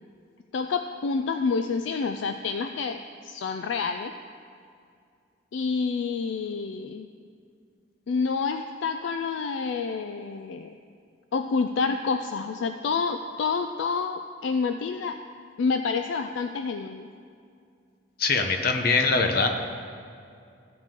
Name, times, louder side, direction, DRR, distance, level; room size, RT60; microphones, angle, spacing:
voice 1, 0.5-4.1 5.5-7.1 8.1-10.8 11.3-15.2 15.6-17.1, left 5 dB, 70° left, 7 dB, 0.3 m, -28 dB
voice 2, 18.2-19.5, left 4 dB, 50° left, 5 dB, 0.8 m, -22 dB
14.5 x 7.4 x 3.7 m, 2.4 s
head